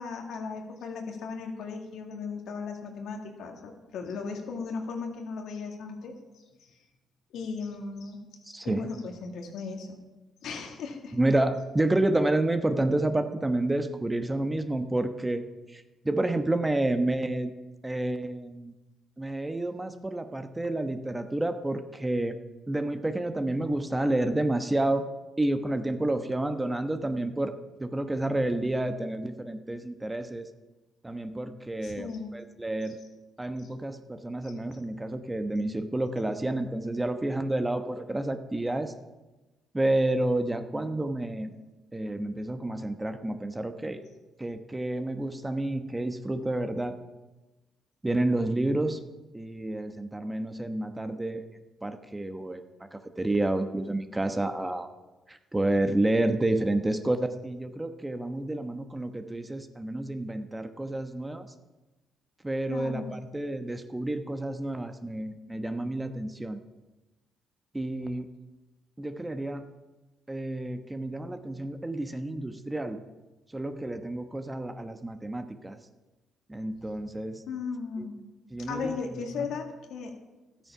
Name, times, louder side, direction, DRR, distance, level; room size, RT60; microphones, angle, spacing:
voice 1, 0.0-6.2 7.3-8.2 8.6-10.0 10.4-11.2 31.8-32.3 33.6-33.7 62.7-63.1 77.5-78.2 78.6-80.1, left 5 dB, 75° left, 2 dB, 2.0 m, -36 dB
voice 2, 8.4-8.9 11.1-17.5 17.8-18.7 19.2-22.4 22.7-25.1 25.4-27.5 27.8-30.5 31.0-33.0 33.4-38.9 39.7-41.5 41.9-44.0 44.4-47.0 48.0-49.0 49.3-51.5 51.8-52.6 52.9-54.9 55.3-61.5 62.4-66.6 67.7-68.3 69.0-69.7 70.3-73.0 73.5-75.8 76.5-77.4 78.0-78.1 78.5-78.9 79.4-79.5, right 1 dB, 15° right, 8 dB, 1.0 m, -29 dB
12.5 x 9.0 x 5.7 m, 1.1 s
supercardioid pair, 60°, 0 cm